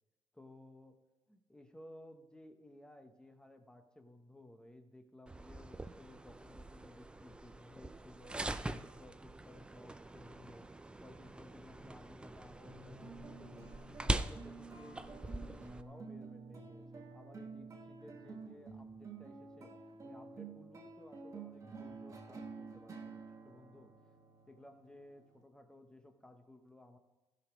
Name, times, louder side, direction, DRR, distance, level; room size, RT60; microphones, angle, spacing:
voice 1, 0.3-1.0 1.3-23.9 24.5-27.0, left 1 dB, 5° left, 6 dB, 0.9 m, -58 dB
sound 1, 5.3-15.8, right 2 dB, 10° right, 0.4 m, -43 dB
sound 2, 12.7-25.4, right 4 dB, 30° right, 1.3 m, -50 dB
14.5 x 5.1 x 6.1 m, 1.1 s
cardioid pair, 140°, 11 cm